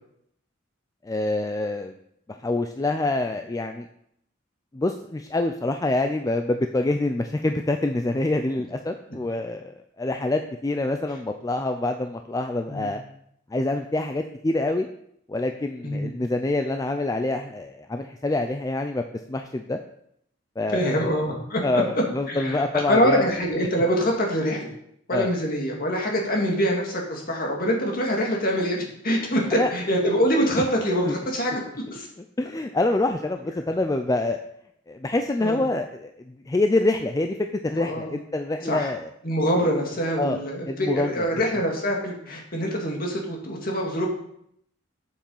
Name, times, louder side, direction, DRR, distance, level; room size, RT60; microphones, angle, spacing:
voice 1, 1.0-1.9 2.3-3.9 4.7-13.0 13.5-14.9 15.3-19.0 19.3-19.8 20.6-21.2 21.6-23.2 25.1-25.3 29.5-29.7 30.9-31.2 32.4-34.4 34.9-37.4 37.6-39.1 39.6-39.7 40.2-40.4 40.7-41.3, left 2 dB, 15° left, 6 dB, 0.4 m, -26 dB
voice 2, 20.7-21.6 22.3-24.7 25.1-31.6 31.9-32.1 35.4-35.6 37.8-38.2 38.6-38.9 39.2-44.1, equal, 50° left, 0 dB, 2.1 m, -25 dB
7.4 x 7.3 x 5.4 m, 0.73 s
head